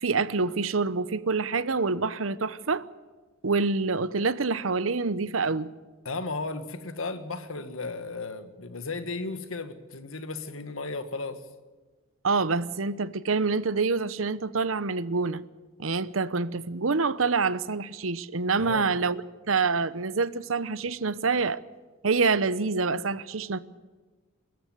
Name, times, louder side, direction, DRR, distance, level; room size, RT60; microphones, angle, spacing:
voice 1, 0.0-2.9 3.4-5.7 12.2-15.4 15.8-19.2 19.5-21.6 22.0-23.6, right 4 dB, 80° right, 0.9 m, -26 dB
voice 2, 6.1-11.4 18.6-18.9, left 3 dB, 85° left, 1.9 m, -35 dB
24.0 x 14.0 x 9.4 m
head